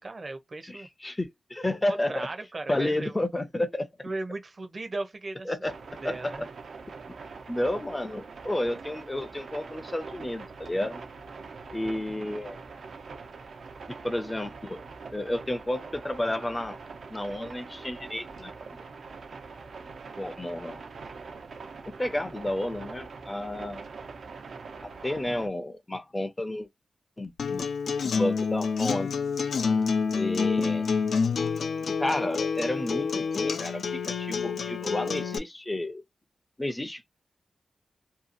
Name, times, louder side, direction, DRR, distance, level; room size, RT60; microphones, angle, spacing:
voice 1, 0.0-0.9 1.9-3.1 4.0-5.6 6.0-6.5, right 2 dB, 40° right, 0.7 m, -36 dB
voice 2, 0.7-2.3 2.7-4.1 5.5-5.8 6.0-6.5 7.5-11.0 11.7-12.6 13.9-14.9 15.1-16.8 17.1-18.8 20.2-20.8 22.0-23.8 24.8-26.7 27.2-27.7 28.0-29.1 30.1-30.9 31.9-36.0 36.6-37.1, left 1 dB, 15° left, 0.5 m, -31 dB
sound 1, 5.6-25.5, right 4 dB, 70° right, 0.6 m, -43 dB
Acoustic guitar, 27.4-35.4, left 5 dB, 80° left, 0.4 m, -28 dB
2.7 x 2.3 x 2.5 m
wide cardioid pair, 105°, 0 cm